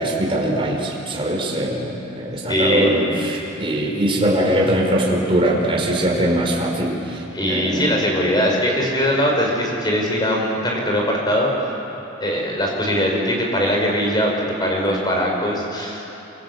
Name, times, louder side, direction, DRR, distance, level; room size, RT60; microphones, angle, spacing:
voice 1, 0.0-8.0, right 1 dB, 25° right, -1 dB, 4.8 m, -21 dB
voice 2, 2.5-3.0 7.3-11.7 12.2-14.3 14.6-16.0, equal, 20° left, 0 dB, 5.3 m, -21 dB
27.5 x 26.0 x 8.1 m, 3.0 s
head